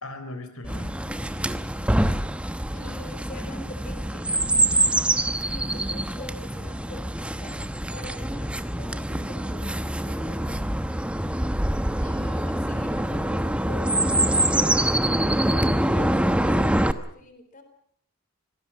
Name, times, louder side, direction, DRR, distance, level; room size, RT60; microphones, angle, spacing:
voice 1, 0.0-1.6, left 2 dB, 80° left, 9 dB, 3.8 m, -40 dB
Chirp tweet, 0.6-16.9, right 1 dB, 5° right, 1.0 m, -25 dB
voice 2, 2.7-4.4 5.5-7.6 7.9-10.6 12.0-17.6, left 2 dB, 35° left, 8 dB, 4.0 m, -44 dB
26.0 x 19.0 x 7.3 m, 0.65 s
head